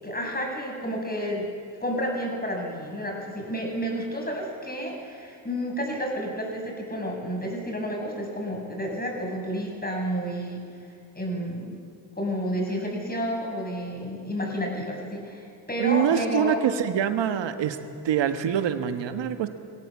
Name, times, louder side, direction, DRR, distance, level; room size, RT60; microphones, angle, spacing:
voice 1, 0.0-1.5 1.8-10.6 11.1-11.8 12.2-16.6, equal, 20° left, 0 dB, 7.6 m, -30 dB
voice 2, 15.8-17.8 18.0-19.5, right 9 dB, 60° right, 8 dB, 1.7 m, -25 dB
22.0 x 17.0 x 7.5 m, 2.3 s
hypercardioid pair, 55°, 50 cm